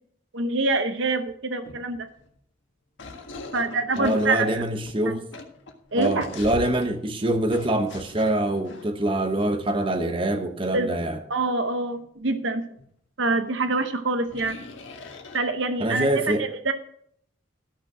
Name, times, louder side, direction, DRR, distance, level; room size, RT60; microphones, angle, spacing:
voice 1, 0.3-2.1 3.5-4.5 5.1-5.2 5.9-6.3 10.7-10.9 11.3-12.6 13.2-14.6 15.3-16.7, right 3 dB, 65° right, 0.9 m, -25 dB
sound 1, 1.3-1.4 1.6-2.4 3.0-7.0 7.5-9.4 9.8-10.0 12.3-12.4 12.8-12.9 13.4-13.5 14.3-15.8, left 2 dB, 65° left, 1.7 m, -42 dB
voice 2, 4.0-5.2 5.9-11.2 15.8-16.4, right 1 dB, 25° right, 1.0 m, -25 dB
13.5 x 6.4 x 6.1 m
head